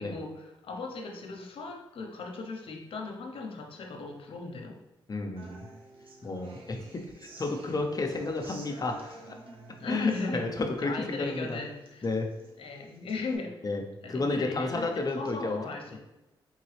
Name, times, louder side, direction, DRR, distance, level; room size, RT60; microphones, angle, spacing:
voice 1, 0.0-4.8 7.7-7.9 9.8-10.5 10.8-12.1 12.6-13.7 14.0-16.0, left 4 dB, 75° left, 2 dB, 0.9 m, -37 dB
voice 2, 5.1-5.7 6.2-9.3 9.9-11.6 12.0-12.3 13.6-13.8 14.1-15.6 15.9-16.0, left 2 dB, 40° left, 3 dB, 0.8 m, -32 dB
Human voice / Acoustic guitar, 5.4-13.3, right 2 dB, 75° right, 0.8 m, -51 dB
4.0 x 3.7 x 3.3 m, 1.0 s
cardioid pair, 65°, 9 cm